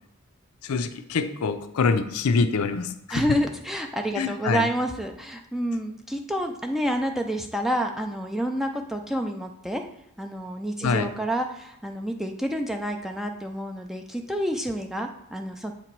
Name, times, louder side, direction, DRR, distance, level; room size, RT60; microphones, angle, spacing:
voice 1, 0.6-3.4 4.1-4.7 10.8-11.1, left 4 dB, 80° left, 9 dB, 0.5 m, -25 dB
voice 2, 3.1-9.8 10.2-15.7, equal, ahead, 3 dB, 0.3 m, -29 dB
8.0 x 2.9 x 4.5 m, 0.76 s
head